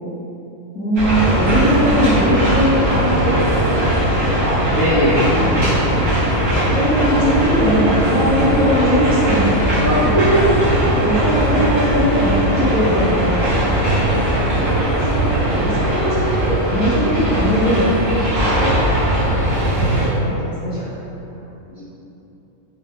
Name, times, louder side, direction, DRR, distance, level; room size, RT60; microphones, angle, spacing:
voice 1, 0.7-4.1 4.7-5.0 5.3-9.5 10.9-14.2 14.5-18.1 18.4-18.8 19.8-20.3 20.6-20.9, equal, 30° left, -12 dB, 1.4 m, -20 dB
sound 1, 0.9-20.1, right 1 dB, 45° right, 1.2 m, -19 dB
voice 2, 4.4-5.8 9.8-10.9 21.7-21.8, equal, 65° left, -12 dB, 1.2 m, -19 dB
3.4 x 3.3 x 2.3 m, 3.0 s
omnidirectional pair, 1.5 m